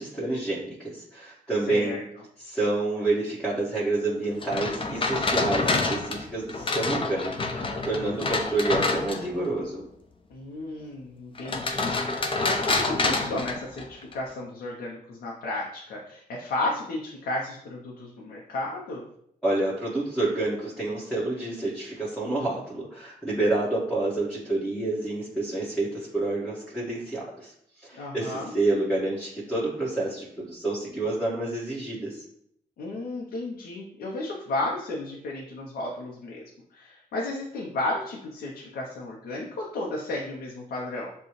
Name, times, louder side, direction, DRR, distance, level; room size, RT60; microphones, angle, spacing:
voice 1, 0.0-1.9 2.4-9.8 19.4-32.2, right 2 dB, 5° left, -8 dB, 1.6 m, -28 dB
voice 2, 1.6-2.0 10.3-19.0 27.9-28.5 32.8-41.1, left 2 dB, 85° left, -2 dB, 0.8 m, -33 dB
sound 1, 4.4-9.5 11.4-14.1, left 3 dB, 35° left, 0.7 m, -27 dB
6.9 x 2.3 x 3.2 m, 0.72 s
cardioid pair, 75°, 15 cm